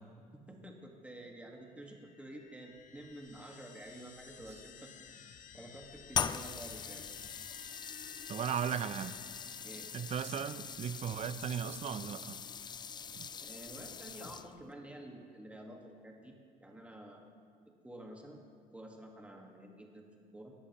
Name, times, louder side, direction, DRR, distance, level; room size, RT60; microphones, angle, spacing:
voice 1, 0.3-4.9 5.5-7.0 9.6-9.9 13.4-17.2 17.8-18.4 18.7-20.1 20.3-20.5, right 1 dB, 5° right, 1 dB, 1.6 m, -50 dB
sound 1, 1.7-11.0, left 7 dB, 50° left, 0.7 m, -56 dB
sound 2, 6.1-14.7, left 7 dB, 25° left, 0.3 m, -42 dB
voice 2, 8.3-9.1 9.9-12.4 13.2-13.3, right 8 dB, 40° right, 13 dB, 0.5 m, -36 dB
17.0 x 11.0 x 3.0 m, 2.2 s
cardioid pair, 110°, 17 cm